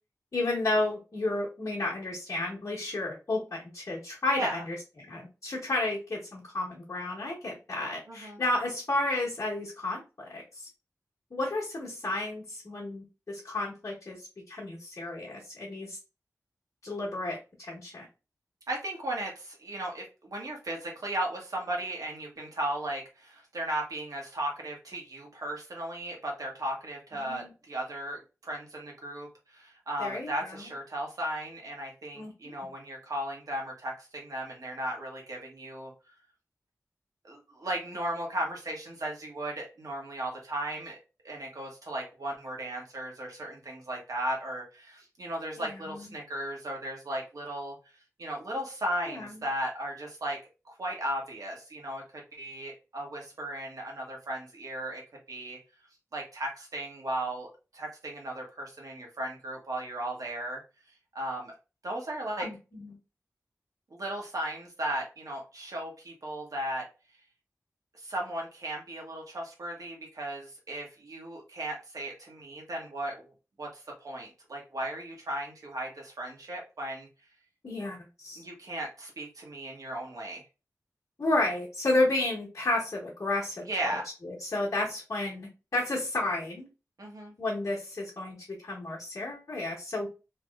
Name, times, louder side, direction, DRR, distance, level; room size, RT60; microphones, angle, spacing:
voice 1, 0.3-10.7 11.3-16.0 16.8-18.1 27.2-27.5 30.0-30.7 32.1-32.5 45.6-46.1 49.0-49.4 62.4-63.0 77.6-78.4 81.2-84.0 84.2-86.7 87.4-88.4 88.6-90.1, left 2 dB, 60° left, -7 dB, 1.3 m, -32 dB
voice 2, 4.3-4.6 8.1-8.4 18.7-35.9 37.2-41.0 41.2-47.7 48.2-50.4 50.6-55.0 55.3-55.6 56.1-60.6 61.1-61.5 61.8-62.5 63.9-66.8 68.0-73.1 73.6-77.1 78.4-80.4 83.7-84.1 87.0-87.3, right 1 dB, 80° right, 0 dB, 1.3 m, -36 dB
3.3 x 3.0 x 2.4 m, 0.30 s
wide cardioid pair, 80°, 6 cm